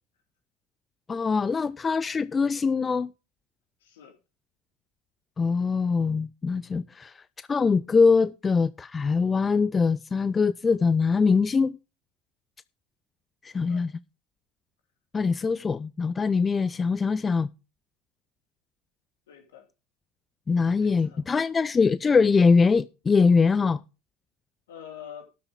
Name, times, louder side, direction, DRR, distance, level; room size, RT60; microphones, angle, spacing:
voice 1, 1.1-3.1 5.4-7.2 7.5-11.8 13.4-13.9 15.1-17.5 20.5-23.8, left 5 dB, 25° left, 0.4 m, -23 dB
voice 2, 3.8-4.1 13.5-13.8 19.3-19.6 20.8-21.2 24.7-25.3, left 9 dB, 70° left, 2.5 m, -45 dB
12.5 x 8.8 x 3.7 m
figure-of-eight pair, 70°, 0 cm